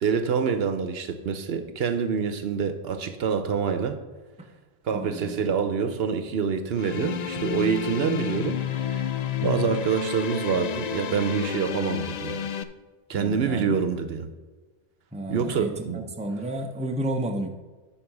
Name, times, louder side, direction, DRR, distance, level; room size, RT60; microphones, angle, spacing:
voice 1, 0.0-4.0 4.8-9.1 9.4-12.5 13.1-14.3 15.3-16.1, right 6 dB, 75° right, 9 dB, 1.0 m, -26 dB
voice 2, 4.9-5.5 9.4-9.7 13.1-13.8 15.1-17.5, right 1 dB, 10° right, 3 dB, 0.7 m, -32 dB
sound 1, 6.8-12.6, left 8 dB, 55° left, 0.5 m, -30 dB
10.0 x 4.5 x 5.9 m, 1.3 s
omnidirectional pair, 1.0 m